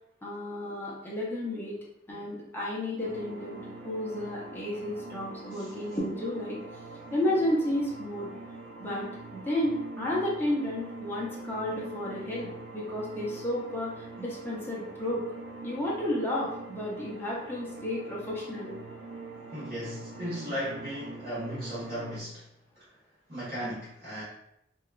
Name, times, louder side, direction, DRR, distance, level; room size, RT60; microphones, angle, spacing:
voice 1, 0.2-1.8 2.1-6.6 7.1-8.3 8.8-9.1 9.3-15.2 15.6-18.7, left 1 dB, 10° left, -6 dB, 0.5 m, -32 dB
sound 1, 3.0-22.2, right 2 dB, 85° right, 0.5 m, -44 dB
voice 2, 19.5-22.4 22.7-22.8 23.3-24.2, equal, 50° right, -11 dB, 1.3 m, -36 dB
2.8 x 2.3 x 2.3 m, 0.76 s
head